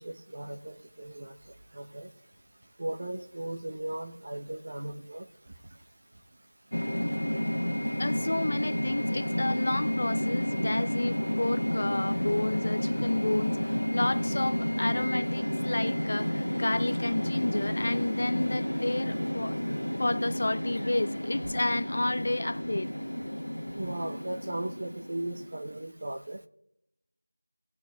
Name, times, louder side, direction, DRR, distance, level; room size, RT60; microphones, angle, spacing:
voice 1, 0.0-1.3 1.7-2.1 2.8-5.2 23.8-26.4, right 1 dB, 35° right, 0.8 m, -37 dB
sound 1, 6.7-25.8, equal, 90° left, 1.3 m, -31 dB
voice 2, 8.0-19.6 20.0-22.9, left 2 dB, 35° left, 0.5 m, -31 dB
19.0 x 8.7 x 2.3 m
figure-of-eight pair, 175°, 0 cm